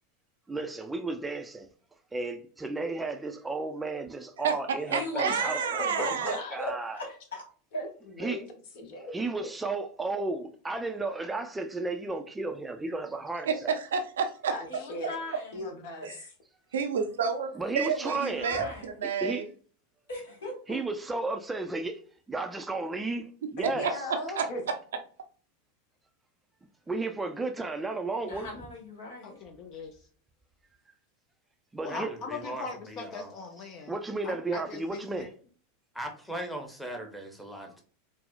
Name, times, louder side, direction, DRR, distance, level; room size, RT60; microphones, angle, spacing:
voice 1, 0.5-1.7 2.1-7.0 8.2-8.4 9.1-13.8 17.6-18.5 19.0-19.4 20.7-22.0 22.3-23.9 26.9-28.5 31.7-32.1 33.9-35.3, right 3 dB, 10° right, 0.4 m, -33 dB
voice 2, 4.4-6.4 13.5-14.5 16.1-16.2 16.7-19.5 23.6-24.5, right 6 dB, 75° right, 0.5 m, -30 dB
voice 3, 4.9-7.4 14.7-15.6 18.0-18.9 20.1-20.8 28.3-29.4, left 1 dB, 80° left, 1.3 m, -39 dB
voice 4, 5.7-6.6 7.7-8.5 8.7-9.1 14.5-15.2 15.5-16.3 23.6-24.6, left 1 dB, 60° left, 0.9 m, -37 dB
voice 5, 29.2-30.0 31.8-33.9 34.2-35.3, left 4 dB, 45° left, 0.5 m, -40 dB
voice 6, 31.9-33.3 35.9-37.8, right 1 dB, 5° left, 0.8 m, -39 dB
4.2 x 2.0 x 2.3 m
hypercardioid pair, 90°, 0 cm